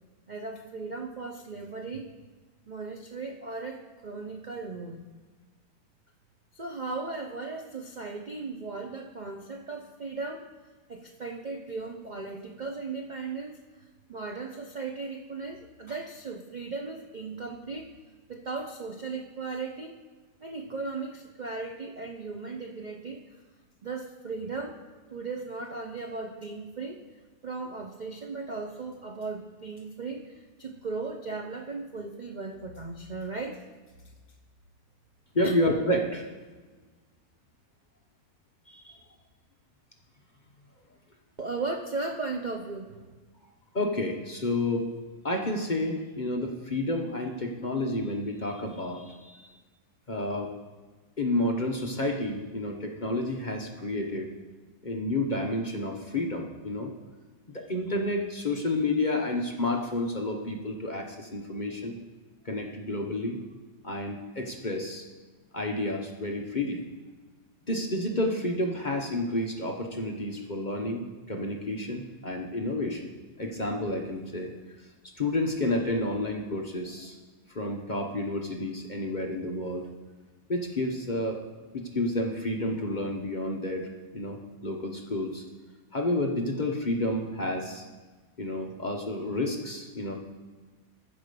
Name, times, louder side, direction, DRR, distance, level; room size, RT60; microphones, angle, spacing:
voice 1, 0.3-2.1 2.7-5.0 6.5-10.5 10.9-13.6 14.1-17.9 18.3-19.9 20.4-23.4 23.8-24.8 25.1-27.0 27.4-33.7 35.4-35.5 41.4-43.1, right 3 dB, 45° right, 2 dB, 0.6 m, -37 dB
voice 2, 35.3-36.3 38.7-39.0 43.7-44.9 45.2-49.5 50.1-50.5 51.2-54.3 54.8-56.9 57.5-61.9 62.4-63.4 63.8-65.1 65.5-66.8 67.7-73.1 73.4-74.5 75.2-77.1 77.5-79.9 80.5-81.4 81.7-85.4 85.9-87.8 88.4-90.1, left 1 dB, 35° left, 1 dB, 0.9 m, -30 dB
14.5 x 5.0 x 6.8 m, 1.3 s
omnidirectional pair, 1.8 m